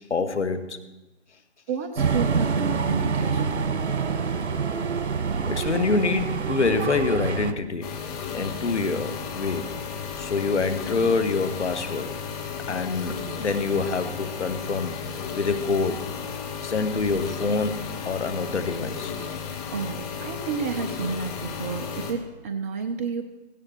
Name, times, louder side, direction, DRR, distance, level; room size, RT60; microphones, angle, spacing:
voice 1, 0.1-0.8 5.5-7.9 8.3-9.8 10.2-12.2 12.7-14.9 15.4-16.0 16.6-19.1, left 4 dB, 80° left, 10 dB, 1.9 m, -26 dB
voice 2, 1.7-3.7 19.7-23.2, right 5 dB, 15° right, 6 dB, 0.4 m, -31 dB
sound 1, 2.0-7.5, right 5 dB, 70° right, 1.5 m, -26 dB
sound 2, 7.8-22.1, left 6 dB, 35° left, 2.4 m, -34 dB
16.5 x 16.5 x 4.4 m, 1.0 s
figure-of-eight pair, 135°, 34 cm